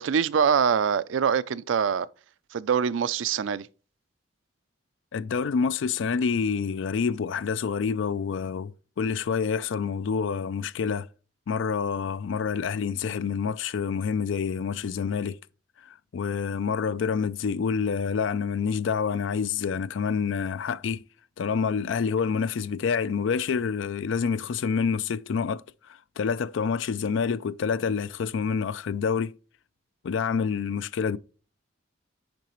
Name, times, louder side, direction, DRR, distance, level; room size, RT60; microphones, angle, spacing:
voice 1, 0.0-2.1 2.5-3.7, right 7 dB, 80° right, 0.4 m, -24 dB
voice 2, 5.1-11.1 11.5-15.4 16.1-21.0 21.4-25.6 26.2-29.3 30.0-31.2, left 6 dB, 75° left, 0.4 m, -27 dB
10.5 x 3.9 x 3.0 m
head